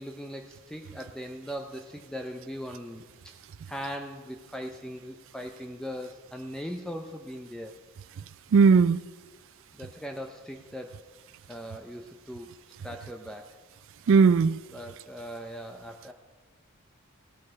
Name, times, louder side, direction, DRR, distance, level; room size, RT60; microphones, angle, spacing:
voice 1, 0.0-3.3 3.7-7.7 9.7-11.0 11.5-12.5 12.8-13.6 14.7-16.1, equal, 5° left, 0.5 m, -39 dB
voice 2, 8.5-9.0 14.1-14.6, right 5 dB, 60° right, 0.3 m, -18 dB
17.5 x 6.4 x 6.3 m
head